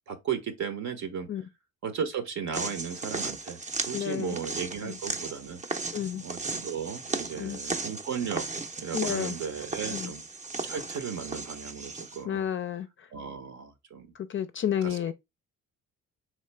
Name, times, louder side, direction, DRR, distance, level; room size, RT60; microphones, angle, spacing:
voice 1, 0.1-1.3 1.8-5.6 6.2-8.5 8.8-10.2 10.6-12.4 13.1-14.1 14.8-15.1, right 7 dB, 65° right, 0.8 m, -35 dB
sound 1, 2.5-12.2, right 3 dB, 25° right, 0.6 m, -36 dB
voice 2, 3.9-4.4 4.8-4.9 5.9-6.2 7.4-7.6 8.9-9.3 9.9-10.1 12.2-12.9 14.3-15.1, left 9 dB, 40° left, 0.4 m, -30 dB
3.7 x 3.1 x 3.2 m
cardioid pair, 90°, 30 cm